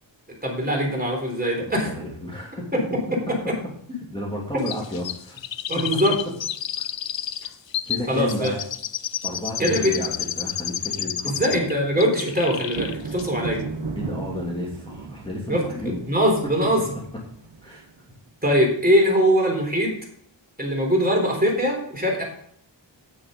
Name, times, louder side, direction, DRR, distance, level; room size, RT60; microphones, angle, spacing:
voice 1, 0.4-1.9 5.7-6.1 8.1-8.5 9.6-9.9 11.2-13.6 15.5-15.6 16.1-16.8 18.4-19.9 20.6-22.2, equal, 20° right, -1 dB, 3.6 m, -21 dB
voice 2, 1.7-2.6 4.1-5.4 5.8-5.9 7.9-8.6 9.2-11.7 13.9-16.0 17.6-17.9, left 1 dB, 10° left, -3 dB, 2.7 m, -32 dB
Chirp tweet, 4.7-11.7 12.0-12.9 13.2-13.3, left 10 dB, 75° left, 0.7 m, -30 dB
sound 1, 12.7-18.2, right 4 dB, 70° right, 1.7 m, -35 dB
9.8 x 9.5 x 3.9 m, 0.65 s
wide cardioid pair, 105°, 45 cm